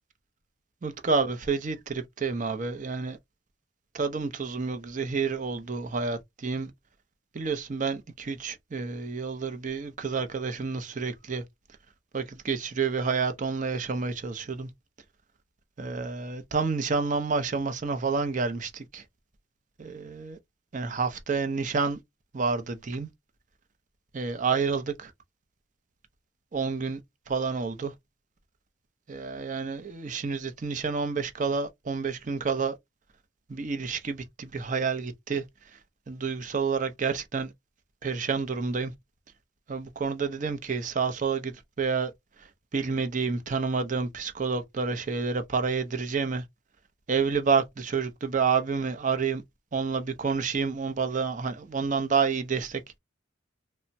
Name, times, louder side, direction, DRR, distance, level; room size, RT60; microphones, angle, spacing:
voice 1, 0.8-3.2 3.9-6.7 7.3-11.4 12.1-14.7 15.8-19.0 19.8-20.4 20.7-22.0 22.3-23.1 24.1-25.1 26.5-27.0 27.3-27.9 29.1-32.8 33.5-35.8 36.1-37.5 38.0-38.9 39.7-42.1 42.4-46.4 47.1-49.4 49.7-53.0, right 5 dB, 40° right, 0.5 m, -29 dB
3.2 x 2.1 x 2.6 m
head